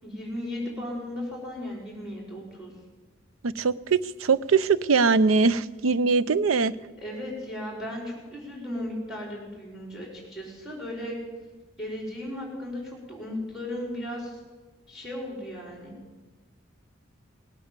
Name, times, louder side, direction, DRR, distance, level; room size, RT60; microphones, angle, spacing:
voice 1, 0.0-2.7 7.0-11.2 11.8-14.4 14.9-16.0, left 1 dB, ahead, -1 dB, 4.8 m, -36 dB
voice 2, 3.4-6.7, right 4 dB, 85° right, 17 dB, 0.5 m, -22 dB
18.5 x 8.7 x 7.4 m, 1.2 s
head